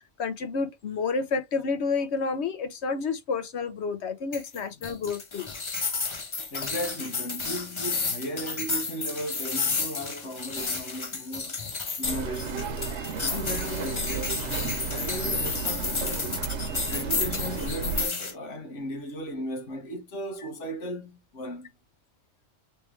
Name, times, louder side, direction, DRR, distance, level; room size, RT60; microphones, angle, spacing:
voice 1, 0.2-5.5 5.9-6.0, left 4 dB, 65° left, 1.1 m, -30 dB
sound 1, 4.3-18.3, left 4 dB, 30° left, 0.6 m, -32 dB
voice 2, 4.6-5.0 6.5-11.6 12.0-12.8 13.3-16.5 16.9-21.7, equal, 85° left, 1.4 m, -36 dB
sound 2, 12.0-18.1, right 5 dB, 70° right, 1.1 m, -33 dB
3.3 x 3.1 x 3.1 m
omnidirectional pair, 1.2 m